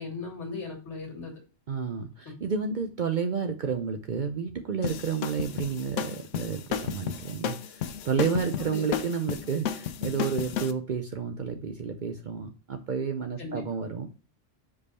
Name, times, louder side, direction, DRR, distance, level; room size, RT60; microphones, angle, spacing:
voice 1, 0.0-1.3 2.3-2.4 8.4-8.9 13.4-13.6, left 4 dB, 65° left, 2 dB, 2.1 m, -37 dB
voice 2, 1.7-14.1, right 6 dB, 50° right, 5 dB, 0.6 m, -31 dB
sound 1, 4.8-10.7, left 8 dB, 85° left, 1.0 m, -33 dB
5.1 x 4.7 x 4.1 m, 0.36 s
omnidirectional pair, 1.2 m